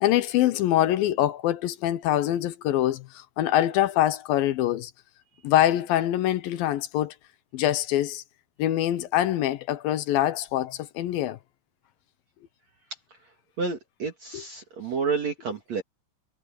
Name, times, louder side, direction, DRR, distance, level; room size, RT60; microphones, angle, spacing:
voice 1, 0.0-4.9 5.4-7.1 7.5-8.2 8.6-11.4, left 13 dB, 75° left, 2.5 m, -24 dB
voice 2, 13.1-15.8, right 5 dB, 50° right, 2.9 m, -30 dB
omnidirectional pair, 4.4 m